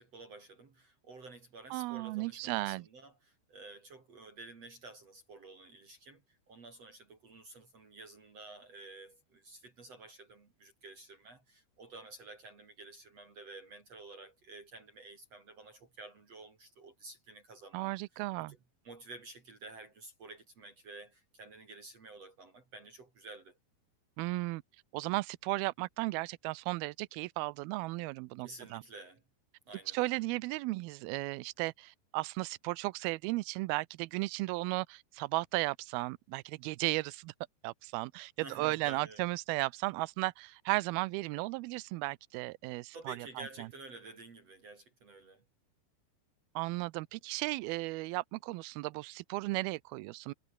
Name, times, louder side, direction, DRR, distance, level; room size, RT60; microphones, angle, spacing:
voice 1, 0.0-18.6 18.8-23.6 28.4-29.2 29.7-30.2 38.4-39.2 42.9-45.4, right 3 dB, 40° right, 3.9 m, -51 dB
voice 2, 1.7-2.9 17.7-18.6 24.2-24.6 24.9-28.8 29.9-37.3 37.6-43.7 46.6-50.3, right 22 dB, 80° right, 2.3 m, -35 dB
omnidirectional pair, 4.8 m